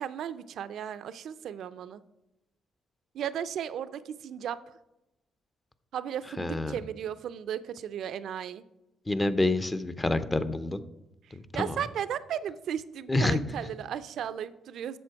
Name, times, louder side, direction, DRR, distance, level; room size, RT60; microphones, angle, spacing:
voice 1, 0.0-2.0 3.1-4.6 5.9-8.6 11.5-15.0, right 9 dB, 70° right, 14 dB, 0.4 m, -35 dB
voice 2, 6.4-6.8 9.1-10.8 11.3-11.8 13.1-13.4, left 2 dB, 20° left, 12 dB, 0.6 m, -27 dB
7.7 x 6.8 x 4.6 m, 0.92 s
cardioid pair, 90°, 0 cm